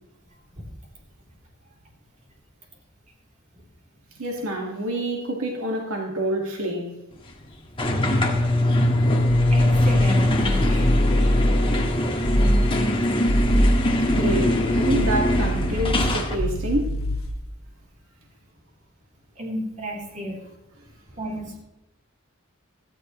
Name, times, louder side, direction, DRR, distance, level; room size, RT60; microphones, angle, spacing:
voice 1, 4.2-6.9 14.1-17.0, right 1 dB, 85° right, 1 dB, 2.0 m, -27 dB
sound 1, 7.8-16.4, left 1 dB, 25° left, 1.7 m, -22 dB
sound 2, 9.3-11.9 12.2-12.7 13.1-17.4, equal, 80° left, 1.4 m, -24 dB
voice 2, 9.5-10.9 12.4-12.7 19.4-20.4 21.2-21.6, equal, 35° right, -1 dB, 3.5 m, -33 dB
17.5 x 14.5 x 3.2 m, 0.89 s
head